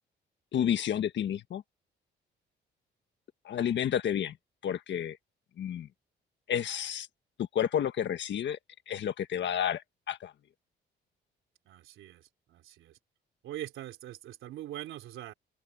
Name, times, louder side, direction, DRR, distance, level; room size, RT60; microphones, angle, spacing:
voice 1, 0.5-1.6 3.4-4.4 4.6-5.2 5.6-5.9 6.5-7.1 7.4-8.6 8.9-10.3, left 9 dB, 65° left, 1.5 m, -30 dB
voice 2, 11.7-13.0 13.4-15.3, right 13 dB, 85° right, 3.5 m, -43 dB
open air
cardioid pair, 90°, 20 cm